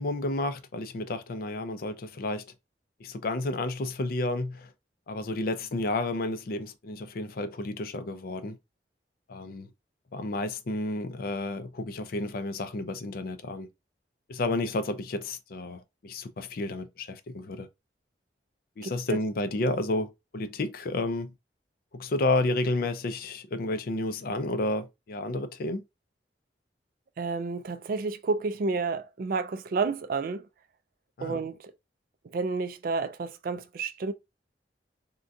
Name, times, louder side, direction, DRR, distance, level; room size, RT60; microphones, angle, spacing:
voice 1, 0.0-2.4 3.0-4.7 5.1-8.6 9.3-9.7 10.1-13.7 14.3-17.7 18.8-21.3 21.9-25.8 31.2-31.4, left 2 dB, 55° left, 0.4 m, -31 dB
voice 2, 27.2-30.5 31.2-31.6 32.3-34.1, right 4 dB, 50° right, 0.3 m, -30 dB
3.6 x 2.3 x 2.6 m
head